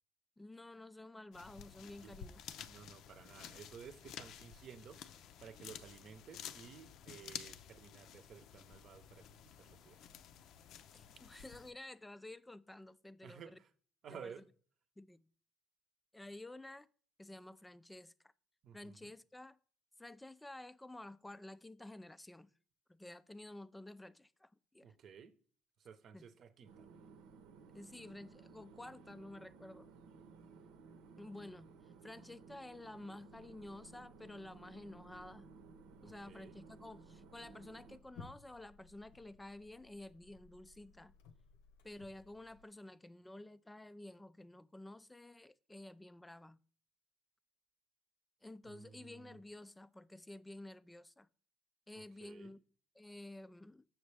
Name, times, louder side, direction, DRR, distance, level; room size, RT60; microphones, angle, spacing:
voice 1, 0.4-2.4 10.9-13.6 14.1-14.3 15.0-15.3 16.1-16.9 17.2-18.3 18.7-19.6 20.0-22.5 22.9-24.9 26.1-26.3 27.7-30.0 31.2-35.5 36.0-41.1 41.8-46.6 48.4-51.3 51.9-52.6 52.9-53.9, left 1 dB, 10° left, 0.4 m, -52 dB
sound 1, 1.3-11.7, left 9 dB, 60° left, 0.5 m, -52 dB
voice 2, 2.7-5.0 5.4-10.0 13.2-13.7 14.0-14.5 18.6-19.1 24.8-25.3 25.8-26.9 36.0-36.6 48.6-49.4 51.9-52.6, right 7 dB, 50° right, 0.8 m, -55 dB
sound 2, 26.6-38.0, right 5 dB, 80° right, 0.9 m, -58 dB
sound 3, 33.3-42.7, left 4 dB, 90° left, 0.9 m, -62 dB
7.0 x 6.3 x 3.3 m
supercardioid pair, 100°, 0 cm